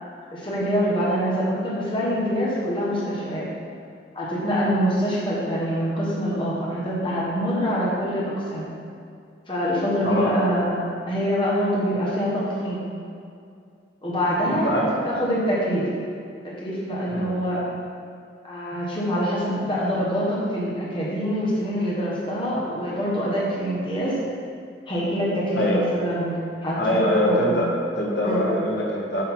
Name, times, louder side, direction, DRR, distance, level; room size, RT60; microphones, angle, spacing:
voice 1, 0.3-3.5 4.1-8.7 9.5-12.8 14.0-14.7 15.0-15.9 16.6-17.6 18.4-24.2 24.9-26.3 26.6-27.0 27.3-27.5 28.2-28.5, equal, 25° left, -6 dB, 1.4 m, -25 dB
voice 2, 10.0-10.3 14.5-14.9 17.1-17.3 25.5-25.8 26.8-29.2, left 1 dB, 60° left, -4 dB, 1.4 m, -23 dB
6.6 x 3.9 x 5.8 m, 2.3 s
head